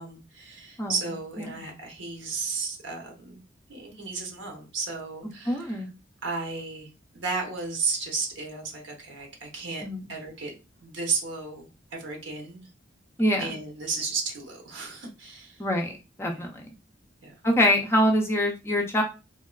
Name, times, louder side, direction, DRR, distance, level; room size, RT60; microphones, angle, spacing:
voice 1, 0.0-3.4 3.7-5.8 6.2-9.8 10.1-12.7 13.4-15.7 16.3-16.5 17.2-17.3, right 4 dB, 80° right, 0.9 m, -34 dB
voice 2, 5.5-5.9 9.8-10.1 13.2-13.4 15.6-16.6 17.4-19.0, equal, 15° left, 0.4 m, -24 dB
3.5 x 2.3 x 2.2 m
head